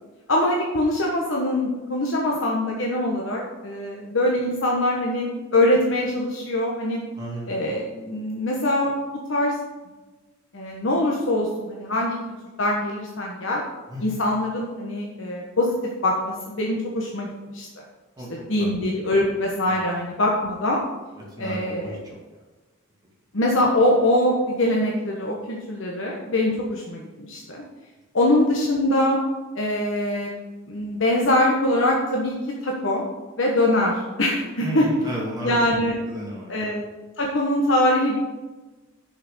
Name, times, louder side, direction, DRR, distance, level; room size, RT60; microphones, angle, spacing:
voice 1, 0.3-7.0 7.5-9.0 9.3-9.5 10.5-12.2 12.6-13.6 14.0-15.7 16.0-17.8 18.3-20.8 21.4-22.0 23.3-27.6 28.1-29.2 29.5-30.3 30.7-32.4 32.6-33.0 33.4-34.9 35.4-36.0 36.5-36.8 37.2-38.2, left 1 dB, 70° left, -2 dB, 1.2 m, -23 dB
voice 2, 7.2-7.5 13.9-14.1 18.2-18.7 19.7-19.9 21.4-22.0 34.6-36.7, right 1 dB, 20° right, -4 dB, 2.3 m, -33 dB
6.5 x 5.9 x 6.7 m, 1.2 s
head